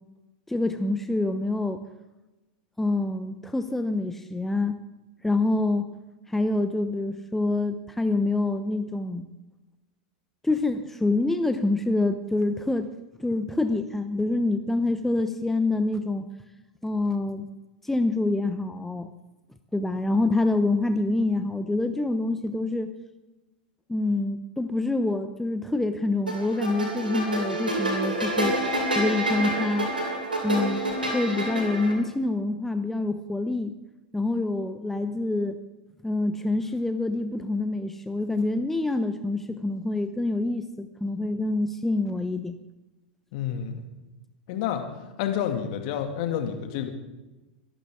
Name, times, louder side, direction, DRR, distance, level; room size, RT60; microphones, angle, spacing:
voice 1, 0.5-1.8 2.8-4.8 5.2-5.9 6.3-9.3 10.4-12.9 13.2-16.3 16.8-17.5 17.8-19.1 19.7-22.9 23.9-28.5 29.0-29.9 30.4-33.7 34.1-35.6 36.0-42.6, left 2 dB, 5° left, 8 dB, 0.9 m, -26 dB
sound 1, 26.3-31.9, right 1 dB, 90° right, 5.2 m, -28 dB
voice 2, 43.3-43.8 44.5-44.9 45.2-46.9, left 9 dB, 50° left, 5 dB, 2.4 m, -29 dB
23.5 x 12.0 x 3.7 m, 1.1 s
figure-of-eight pair, 90°, 5 cm